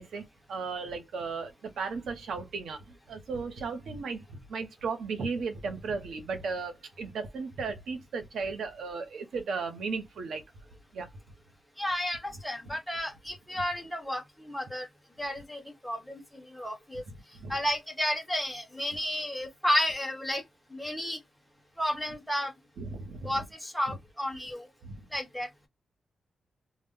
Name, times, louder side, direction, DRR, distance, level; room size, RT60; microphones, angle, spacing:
voice 1, 0.0-10.4 10.9-11.1 12.6-12.8 17.1-17.6 22.8-23.4 23.9-24.0 24.8-25.1, right 4 dB, 75° right, 0.8 m, -36 dB
voice 2, 11.8-14.9 15.2-17.0 17.5-20.4 20.7-21.2 21.8-22.5 23.2-24.7 25.1-25.5, left 1 dB, ahead, 1.0 m, -32 dB
2.2 x 2.1 x 3.6 m
wide cardioid pair, 150°, 0 cm